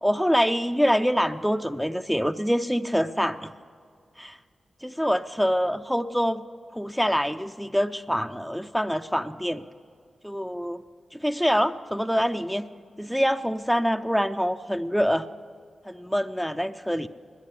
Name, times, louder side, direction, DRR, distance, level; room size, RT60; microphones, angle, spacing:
voice 1, 0.0-3.5 4.2-4.4 4.8-6.4 6.7-9.6 10.2-10.8 11.1-12.7 13.0-15.3 15.9-17.1, equal, ahead, 8 dB, 0.4 m, -25 dB
10.5 x 9.9 x 9.9 m, 2.1 s
cardioid pair, 50°, 0 cm